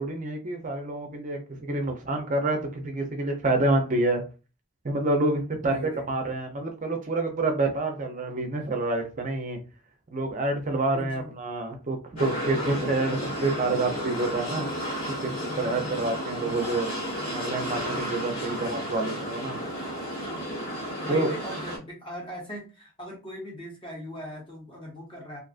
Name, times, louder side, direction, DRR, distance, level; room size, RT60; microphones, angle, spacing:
voice 1, 0.0-4.2 4.8-9.6 10.1-14.7 15.1-16.9 17.3-19.6 21.1-21.3, right 2 dB, 35° right, 4 dB, 0.5 m, -28 dB
voice 2, 5.6-6.1 10.7-11.3 15.3-16.1 21.0-25.4, equal, 25° left, -2 dB, 0.9 m, -40 dB
sound 1, 12.2-21.8, equal, 90° left, 1.4 m, -32 dB
2.5 x 2.3 x 2.4 m, 0.33 s
head